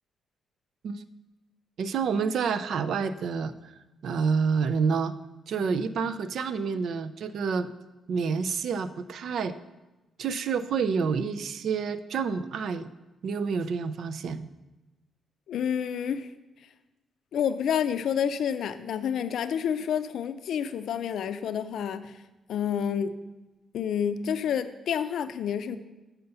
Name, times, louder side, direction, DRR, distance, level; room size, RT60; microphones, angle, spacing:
voice 1, 1.8-3.7 4.0-5.1 5.5-7.7 8.1-9.5 10.2-12.9 13.2-14.5, right 5 dB, 55° right, 12 dB, 0.4 m, -28 dB
voice 2, 15.5-16.3 17.3-22.2 22.5-23.1 23.7-25.8, left 8 dB, 60° left, 12 dB, 0.4 m, -29 dB
6.6 x 5.7 x 6.8 m, 1.1 s
cardioid pair, 180°, 0 cm